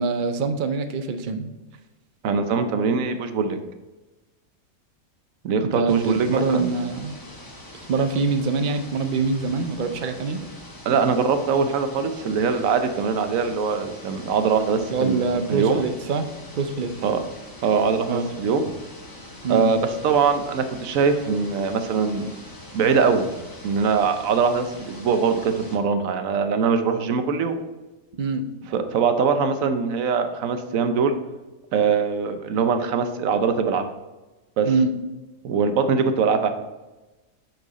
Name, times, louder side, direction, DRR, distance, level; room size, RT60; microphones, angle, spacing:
voice 1, 0.0-1.5 5.7-7.2 7.9-10.5 14.9-16.3 16.6-16.9 18.1-18.3 19.4-19.7 28.2-28.4 34.7-34.9, right 4 dB, 50° right, 8 dB, 0.6 m, -24 dB
voice 2, 2.2-3.6 5.4-6.7 10.9-15.8 17.0-17.2 17.6-18.7 19.5-22.3 22.7-23.3 23.6-27.6 28.7-31.2 31.7-33.8 34.6-34.7 35.4-36.5, right 5 dB, 75° right, 8 dB, 1.1 m, -22 dB
sound 1, 5.9-25.8, left 1 dB, 20° left, 0.9 m, -43 dB
7.7 x 4.7 x 4.1 m, 1.1 s
omnidirectional pair, 1.5 m